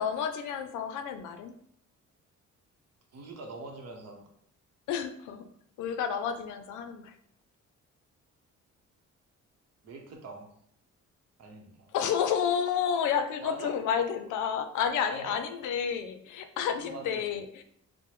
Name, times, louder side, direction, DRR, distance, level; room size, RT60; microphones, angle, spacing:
voice 1, 0.0-1.6 4.9-5.5 5.8-7.2 11.9-17.6, left 7 dB, 85° left, 8 dB, 0.5 m, -30 dB
voice 2, 3.1-4.3 9.8-10.5 11.4-11.9 13.4-13.8 15.1-15.4 16.8-17.4, right 3 dB, 55° right, 2 dB, 0.9 m, -43 dB
4.6 x 2.1 x 3.0 m, 0.69 s
cardioid pair, 90°, 30 cm